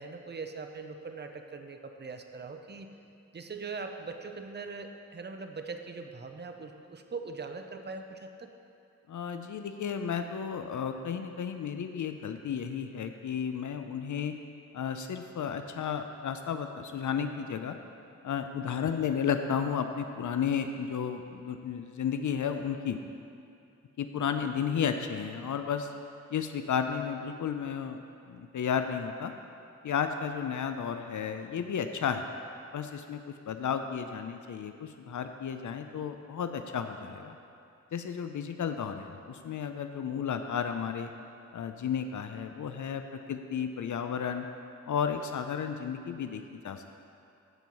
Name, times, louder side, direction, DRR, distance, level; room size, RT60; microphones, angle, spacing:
voice 1, 0.0-2.9 3.3-8.5 24.1-24.4 38.7-38.8, right 4 dB, 35° right, 5 dB, 0.6 m, -41 dB
voice 2, 9.1-14.3 14.7-17.8 18.2-23.0 24.0-25.9 26.3-28.0 28.3-29.3 29.8-32.3 32.7-33.2 33.5-37.4 37.9-41.1 41.5-43.0 43.3-44.5 44.9-46.8, left 7 dB, 85° left, 7 dB, 0.5 m, -33 dB
14.5 x 5.4 x 4.7 m, 2.6 s
wide cardioid pair, 120°, 29 cm